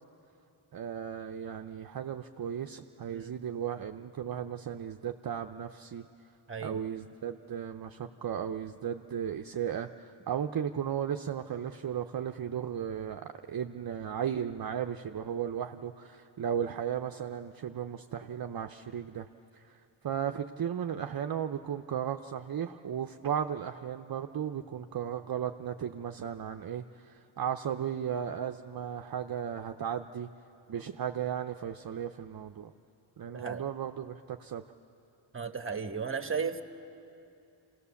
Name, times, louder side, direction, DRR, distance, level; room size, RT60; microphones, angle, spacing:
voice 1, 0.7-6.0 6.6-19.3 19.5-19.8 20.0-30.3 30.7-32.7 33.2-34.6, right 8 dB, 50° right, 6 dB, 0.6 m, -35 dB
voice 2, 6.5-6.8 33.3-33.6 35.3-36.6, right 6 dB, 30° right, 7 dB, 1.1 m, -35 dB
27.0 x 17.0 x 7.0 m, 2.8 s
wide cardioid pair, 100°, 45 cm